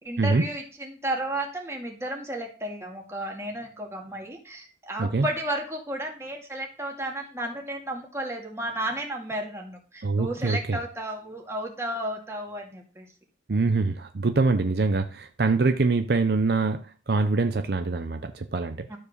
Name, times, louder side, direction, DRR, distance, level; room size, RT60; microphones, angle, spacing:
voice 1, 0.0-13.1, right 1 dB, 15° right, 0 dB, 2.2 m, -33 dB
voice 2, 10.0-10.8 13.5-18.9, right 3 dB, 60° right, 8 dB, 0.6 m, -24 dB
12.5 x 4.7 x 6.6 m, 0.38 s
head